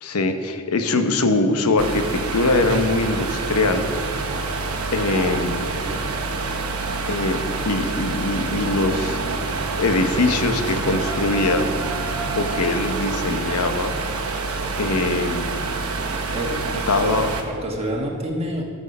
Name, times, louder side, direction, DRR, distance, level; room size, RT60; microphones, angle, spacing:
voice 1, 0.0-3.9 4.9-5.6 7.1-9.2 9.7-11.7 12.4-14.0 14.8-15.5 16.7-17.3, left 2 dB, 85° left, 7 dB, 0.9 m, -22 dB
sound 1, 1.8-17.4, right 3 dB, 80° right, 1.1 m, -27 dB
sound 2, 10.7-12.8, right 3 dB, 5° right, 0.5 m, -35 dB
voice 2, 16.3-16.6 17.0-17.2 17.4-18.6, right 1 dB, 30° right, -1 dB, 1.4 m, -28 dB
13.5 x 6.2 x 5.4 m, 2.3 s
head